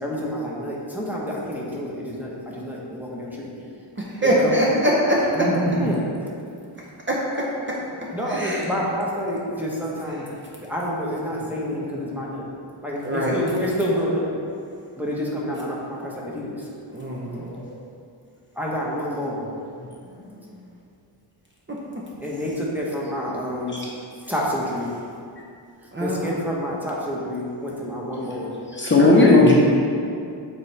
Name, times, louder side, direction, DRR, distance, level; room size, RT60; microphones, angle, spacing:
voice 1, 0.0-3.5 4.4-4.5 5.8-6.0 8.1-10.2 10.6-12.5 12.8-14.3 15.0-16.6 18.6-19.5 22.2-23.7 24.3-24.9 26.0-28.5, equal, 5° right, -4 dB, 1.0 m, -28 dB
voice 2, 4.2-5.5 7.1-7.2 8.3-8.6 10.1-10.2 13.0-13.4 16.9-17.5 25.9-26.4, equal, 25° right, -4 dB, 0.7 m, -22 dB
voice 3, 5.4-6.0 17.5-17.7 19.8-19.9 23.7-23.9 28.7-29.5, left 2 dB, 25° left, -4 dB, 0.8 m, -17 dB
7.2 x 4.2 x 3.3 m, 2.5 s
wide cardioid pair, 125°, 47 cm